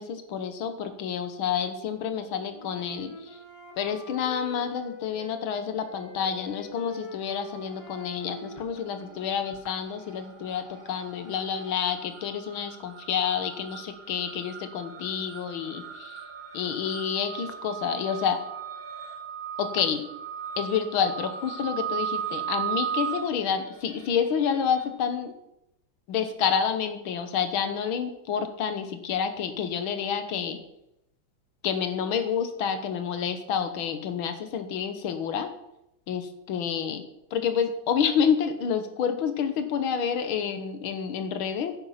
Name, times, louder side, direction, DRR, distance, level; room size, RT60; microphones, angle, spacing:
voice 1, 0.0-3.4 3.8-16.2 16.5-18.4 19.6-20.0 20.6-25.3 26.1-30.6 31.6-35.5 36.1-37.0 37.3-41.8, left 7 dB, 80° left, 9 dB, 2.0 m, -29 dB
Wind instrument woodwind instrument, 1.9-5.4 5.8-9.8, left 3 dB, 20° left, 1.2 m, -44 dB
sound 1, 7.3-8.0 8.3-24.9, right 8 dB, 30° right, 2.5 m, -37 dB
10.0 x 9.1 x 5.7 m, 0.84 s
omnidirectional pair, 2.2 m